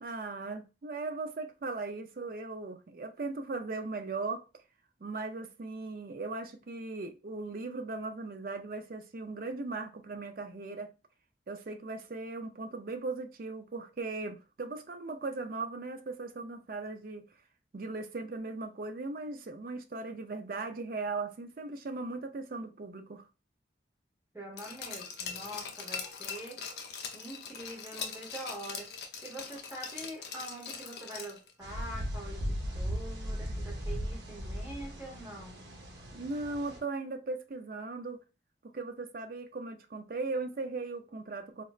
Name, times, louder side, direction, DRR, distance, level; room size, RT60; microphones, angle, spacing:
voice 1, 0.0-4.4 5.0-10.9 11.5-17.2 17.7-23.3 36.1-38.2 38.6-41.6, right 3 dB, 50° right, 0.4 m, -38 dB
voice 2, 24.3-26.6 27.1-28.9 29.2-35.6, right 1 dB, 15° right, 0.8 m, -44 dB
Glass, 24.6-31.5 31.8-31.9, left 6 dB, 70° left, 0.6 m, -41 dB
sound 1, 31.6-36.8, equal, 75° right, 0.8 m, -37 dB
4.0 x 2.1 x 2.3 m
head